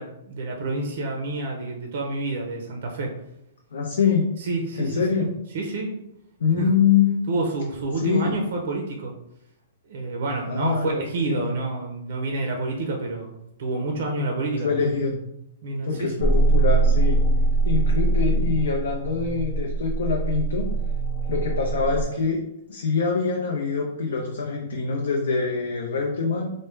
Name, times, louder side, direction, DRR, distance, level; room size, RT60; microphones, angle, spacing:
voice 1, 0.0-3.1 4.4-5.3 5.5-5.9 6.6-6.7 7.3-9.1 9.9-14.7 15.6-16.3, right 2 dB, 45° right, 1 dB, 0.5 m, -28 dB
voice 2, 3.7-4.3 4.8-5.3 6.4-7.1 8.0-8.3 10.5-11.5 14.6-15.2 15.8-17.2 17.6-20.7 21.3-22.4 22.7-26.5, left 5 dB, 70° left, 0 dB, 0.5 m, -24 dB
sound 1, 16.2-22.1, right 3 dB, 15° left, 0.3 m, -22 dB
3.3 x 2.1 x 3.1 m, 0.80 s
hypercardioid pair, 175°, 0 cm